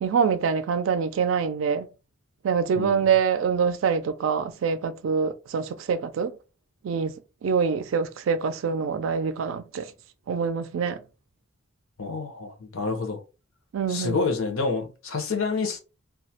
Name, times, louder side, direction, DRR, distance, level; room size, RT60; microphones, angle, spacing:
voice 1, 0.0-1.9 2.4-6.3 6.8-7.1 7.4-9.9 10.3-11.0 13.7-14.2, right 6 dB, 70° right, 0.3 m, -25 dB
voice 2, 12.0-13.2 13.9-15.8, left 4 dB, 90° left, 0.7 m, -28 dB
2.3 x 2.0 x 2.7 m
head